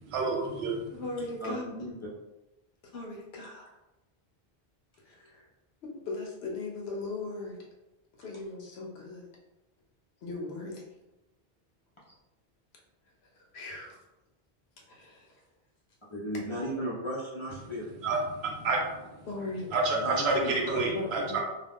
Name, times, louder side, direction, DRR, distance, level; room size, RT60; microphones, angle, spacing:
voice 1, 0.1-1.0 18.0-19.3 19.7-21.4, right 3 dB, 90° right, 1 dB, 0.9 m, -29 dB
voice 2, 0.9-1.8 2.9-3.7 5.0-5.5 5.8-7.6 8.2-9.3 10.2-10.8 13.3-14.0 14.9-15.4 19.3-19.7 20.8-21.4, left 2 dB, 85° left, -1 dB, 0.9 m, -38 dB
voice 3, 16.1-17.9 19.9-20.8, equal, 40° left, -6 dB, 0.5 m, -35 dB
2.4 x 2.3 x 3.4 m, 1.0 s
omnidirectional pair, 1.0 m